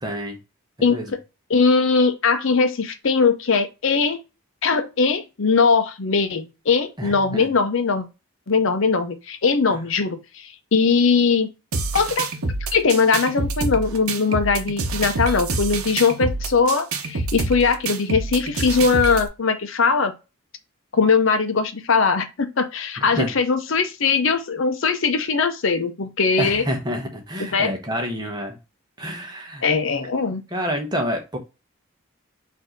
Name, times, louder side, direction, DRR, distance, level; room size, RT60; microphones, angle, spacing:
voice 1, 0.0-0.4 0.8-1.1 7.0-7.5 9.7-9.8 23.0-23.3 26.4-28.6 29.0-29.6 30.5-31.4, equal, 20° right, 1.0 m, -28 dB
voice 2, 0.8-1.2 1.5-4.2 4.6-8.1 8.5-11.5 11.9-12.3 12.7-20.1 20.9-26.6 27.5-27.7 29.6-30.4, left 5 dB, 60° left, 0.6 m, -20 dB
sound 1, 11.7-19.3, right 3 dB, 75° right, 0.8 m, -27 dB
4.4 x 2.7 x 4.4 m
head